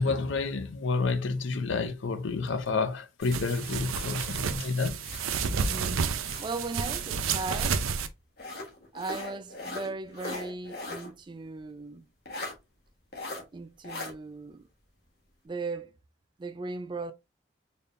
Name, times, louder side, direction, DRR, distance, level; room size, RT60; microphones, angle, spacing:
voice 1, 0.0-5.0, left 4 dB, 70° left, 0.6 m, -29 dB
sound 1, 3.2-5.8 6.2-7.7 8.4-11.1 11.4-11.5 12.3-12.5 13.1-13.4 13.8-14.1, left 2 dB, 50° left, 1.3 m, -40 dB
sound 2, 3.3-8.1, right 6 dB, 85° right, 0.5 m, -30 dB
voice 2, 5.4-6.1 6.4-7.8 8.9-12.0 13.5-14.7 15.4-15.9 16.4-17.1, right 3 dB, 25° right, 0.3 m, -37 dB
4.1 x 3.4 x 2.5 m
head